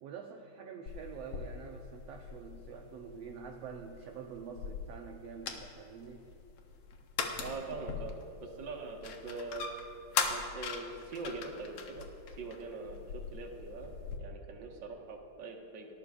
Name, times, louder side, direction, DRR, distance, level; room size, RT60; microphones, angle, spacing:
voice 1, 0.0-6.3, right 6 dB, 70° right, 2 dB, 1.7 m, -46 dB
sound 1, 0.9-14.2, left 5 dB, 60° left, 1.9 m, -41 dB
voice 2, 7.4-9.7 10.3-12.1 12.4-13.9 14.2-15.9, right 3 dB, 45° right, 1 dB, 1.7 m, -43 dB
29.5 x 14.0 x 2.5 m, 2.7 s
omnidirectional pair, 3.6 m